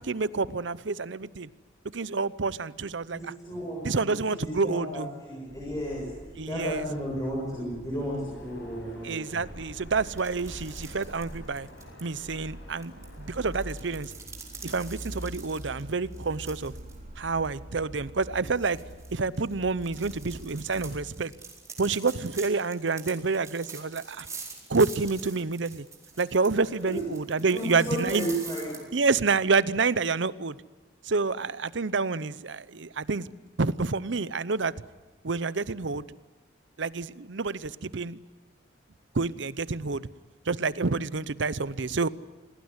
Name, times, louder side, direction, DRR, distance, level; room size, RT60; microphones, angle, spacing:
voice 1, 0.0-1.5 1.9-3.3 3.8-5.1 6.4-6.8 9.0-11.7 12.0-14.1 14.6-16.7 17.2-18.8 19.1-21.3 21.8-24.3 24.7-25.9 26.2-28.3 28.9-30.6 31.0-33.3 33.6-34.7 35.2-36.0 36.8-38.2 39.1-40.1 40.5-42.1, right 4 dB, 65° right, 17 dB, 0.8 m, -28 dB
voice 2, 3.1-3.8 4.2-9.4 26.6-27.0 27.5-28.8, equal, 20° left, -5 dB, 7.7 m, -33 dB
sound 1, 5.5-21.2, equal, 45° right, 4.8 m, -45 dB
sound 2, 8.3-13.9, left 1 dB, 70° left, 7.1 m, -51 dB
sound 3, 10.1-12.0 12.8-17.0 17.3-17.5 18.0-18.1 18.6-28.8, right 5 dB, 15° right, 4.5 m, -45 dB
27.5 x 19.0 x 9.8 m, 1.2 s
head